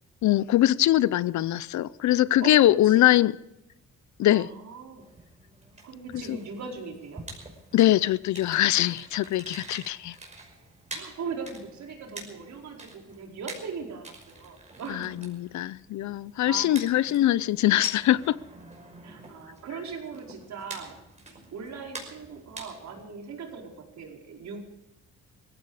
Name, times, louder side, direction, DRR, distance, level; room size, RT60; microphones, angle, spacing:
voice 1, 0.2-3.3 4.2-4.5 6.1-6.4 7.7-10.2 14.9-18.4, left 14 dB, 70° left, 0.7 m, -22 dB
voice 2, 2.4-3.0 4.3-5.1 5.8-7.2 10.9-15.2 15.5-15.7 16.0-16.7 19.0-21.0 21.3-24.6, right 5 dB, 65° right, 4.8 m, -39 dB
sound 1, 5.0-23.1, right 2 dB, 25° right, 5.6 m, -46 dB
19.0 x 15.5 x 4.9 m
cardioid pair, 90°, 30 cm